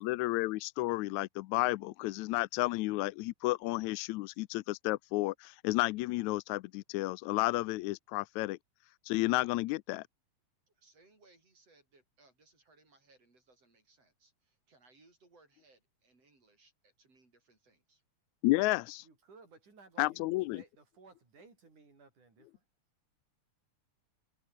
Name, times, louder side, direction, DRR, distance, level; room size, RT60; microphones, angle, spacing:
voice 1, 0.0-8.6 9.1-10.1 18.4-19.0 20.0-20.6, left 20 dB, 80° left, 1.9 m, -32 dB
voice 2, 10.7-18.0, right 3 dB, 50° right, 8.0 m, -66 dB
voice 3, 19.0-22.7, right 4 dB, 80° right, 8.4 m, -59 dB
omnidirectional pair, 3.5 m